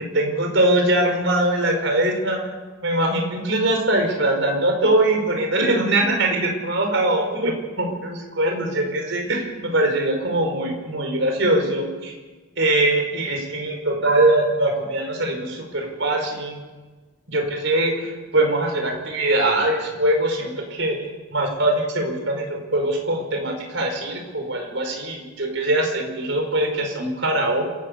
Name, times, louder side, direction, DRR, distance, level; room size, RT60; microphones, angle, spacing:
voice 1, 0.1-2.5 2.8-12.1 12.6-16.6 17.3-21.0 21.3-27.7, right 1 dB, 65° right, 3 dB, 5.3 m, -22 dB
26.5 x 12.0 x 8.2 m, 1.3 s
head